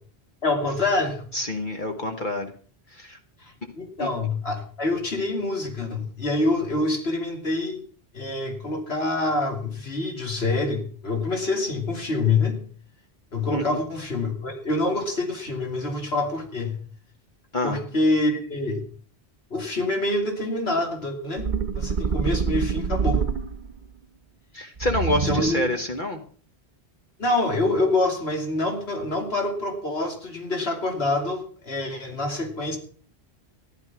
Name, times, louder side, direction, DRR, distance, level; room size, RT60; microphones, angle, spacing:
voice 1, 0.4-1.2 3.4-7.8 8.1-12.6 13.3-16.8 17.6-18.8 19.5-21.5 21.8-23.2 25.1-25.7 27.2-32.8, left 2 dB, 70° left, 3 dB, 3.0 m, -26 dB
voice 2, 1.3-2.5 2.9-3.2 4.0-4.1 13.5-13.6 17.5-17.8 24.5-26.2, left 1 dB, 50° left, 4 dB, 1.4 m, -27 dB
sound 1, 21.4-23.9 24.8-25.8, right 5 dB, 45° right, 1.1 m, -26 dB
14.5 x 11.0 x 6.0 m, 0.43 s
omnidirectional pair, 1.1 m